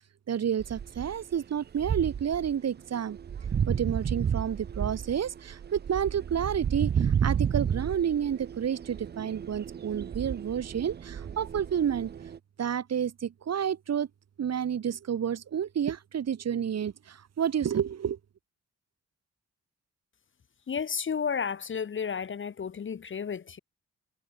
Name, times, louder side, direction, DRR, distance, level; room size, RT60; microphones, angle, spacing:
voice 1, 0.3-3.2 3.7-12.1 12.6-14.1 14.4-18.2, right 8 dB, 60° right, 1.3 m, -30 dB
sound 1, 0.6-1.4 1.8-2.5 2.9-12.4, right 8 dB, 35° right, 0.4 m, -32 dB
voice 2, 20.7-23.6, left 6 dB, 40° left, 0.8 m, -32 dB
cardioid pair, 85°, 30 cm